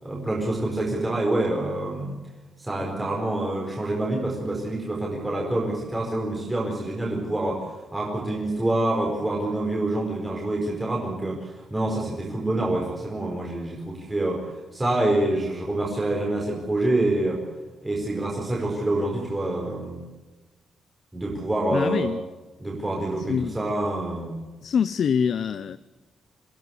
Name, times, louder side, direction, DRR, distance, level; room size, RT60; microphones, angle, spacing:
voice 1, 0.0-2.2 2.6-14.5 14.7-17.4 17.8-20.0 21.1-22.1 22.6-24.4, right 1 dB, 10° right, -2 dB, 4.6 m, -26 dB
voice 2, 21.7-22.2 23.3-23.6 24.6-25.8, left 7 dB, 55° left, 14 dB, 0.7 m, -25 dB
25.5 x 16.5 x 8.0 m, 1.2 s
wide cardioid pair, 150°, 0 cm